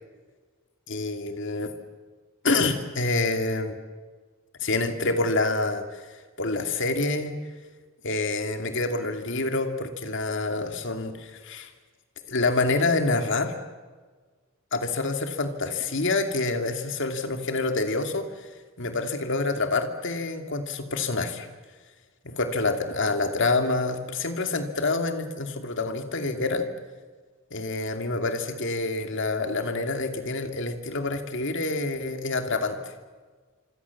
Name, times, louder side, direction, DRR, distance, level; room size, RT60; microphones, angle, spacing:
voice 1, 0.9-1.7 2.4-3.8 4.6-6.0 6.4-7.4 8.0-11.7 12.3-13.5 14.7-18.5 18.8-21.5 22.2-26.7 27.5-32.8, left 3 dB, 60° left, 6 dB, 2.7 m, -27 dB
26.5 x 26.0 x 7.3 m, 1.4 s
head